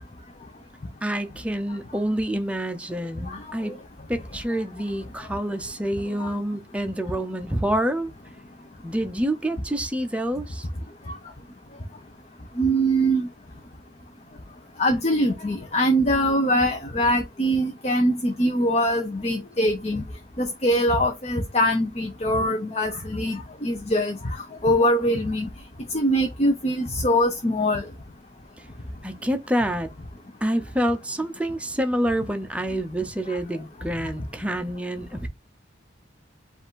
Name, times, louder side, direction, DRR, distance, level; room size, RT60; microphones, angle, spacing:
voice 1, 1.0-3.8 4.1-8.1 8.8-10.7 29.0-29.9 30.4-35.3, right 1 dB, 5° right, 0.6 m, -27 dB
voice 2, 12.6-13.3 14.8-20.0 20.4-24.2 24.6-25.5 25.9-27.8, equal, 35° left, 0.7 m, -23 dB
4.9 x 2.6 x 3.6 m
head